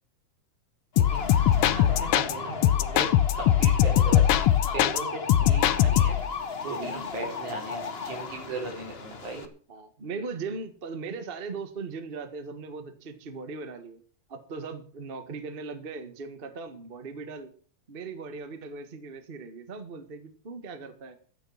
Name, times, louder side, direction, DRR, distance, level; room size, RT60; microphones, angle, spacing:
sound 1, 0.9-9.4, left 5 dB, 60° left, 0.6 m, -34 dB
sound 2, 1.0-2.3 2.6-5.0 5.3-6.3, left 12 dB, 75° left, 1.3 m, -21 dB
voice 1, 1.7-3.1 3.4-4.3 4.7-6.2 6.6-9.5, right 3 dB, 90° right, 3 dB, 5.8 m, -37 dB
voice 2, 6.8-7.1 9.7-14.0 14.3-17.5 17.9-21.1, right 4 dB, 30° right, 10 dB, 1.1 m, -39 dB
13.0 x 9.1 x 7.1 m, 0.43 s
omnidirectional pair, 3.3 m